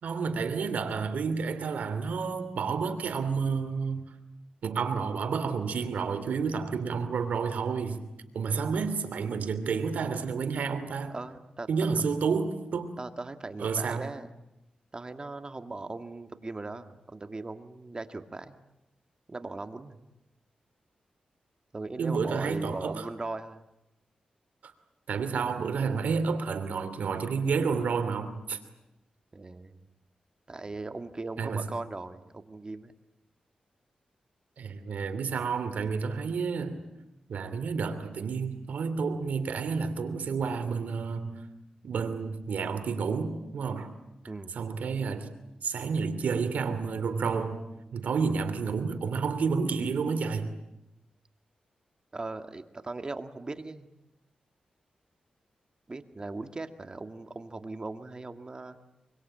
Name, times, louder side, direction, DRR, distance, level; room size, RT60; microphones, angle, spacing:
voice 1, 0.0-4.1 4.6-8.1 8.3-11.1 11.7-12.9 13.6-14.1 22.0-23.0 24.6-24.7 25.1-28.6 31.4-31.6 34.6-36.8 37.3-41.4 41.8-43.9 44.5-45.3 45.6-47.6 47.9-50.5, right 5 dB, 80° right, 9 dB, 2.9 m, -30 dB
voice 2, 11.1-11.7 13.0-14.3 14.9-18.6 19.3-20.1 21.7-23.6 29.3-29.8 30.5-32.9 44.3-44.5 52.1-53.9 55.9-58.8, right 3 dB, 30° right, 8 dB, 1.9 m, -39 dB
25.0 x 23.5 x 8.9 m, 0.90 s
cardioid pair, 75°, 3 cm